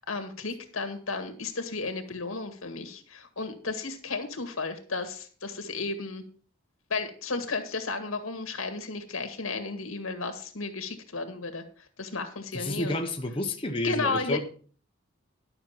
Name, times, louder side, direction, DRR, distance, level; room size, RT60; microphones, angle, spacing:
voice 1, 0.1-6.2 6.9-11.6 12.0-13.0 13.8-14.4, left 3 dB, 85° left, 2.0 m, -33 dB
voice 2, 12.5-14.4, left 1 dB, 25° left, 1.1 m, -30 dB
12.0 x 6.7 x 5.9 m
head